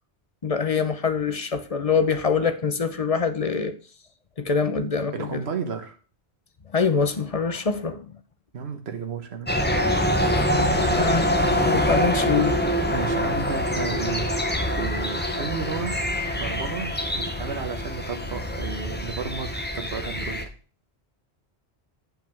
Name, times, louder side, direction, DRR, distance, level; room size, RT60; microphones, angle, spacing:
voice 1, 0.4-3.7 4.4-5.4 6.7-8.1 10.3-10.4 10.9-11.3 11.6-12.7, left 5 dB, 35° left, 0.9 m, -24 dB
voice 2, 5.1-6.0 8.5-9.5 10.5-11.6 12.9-14.3 14.6-16.0 16.4-20.4, right 5 dB, 75° right, 1.4 m, -33 dB
sound 1, 9.5-20.4, equal, 10° left, 1.0 m, -25 dB
7.5 x 5.8 x 4.5 m
omnidirectional pair, 1.1 m